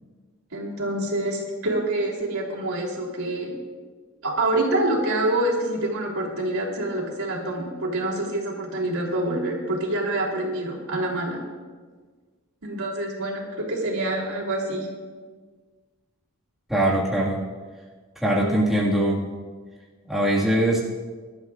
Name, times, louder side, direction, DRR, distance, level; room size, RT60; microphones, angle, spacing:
voice 1, 0.5-3.5 4.2-11.4 12.6-14.9, right 1 dB, 85° right, -2 dB, 3.4 m, -26 dB
voice 2, 16.7-17.4 18.2-19.4 20.1-20.8, right 1 dB, ahead, -6 dB, 1.9 m, -22 dB
23.5 x 12.0 x 2.5 m, 1.5 s
head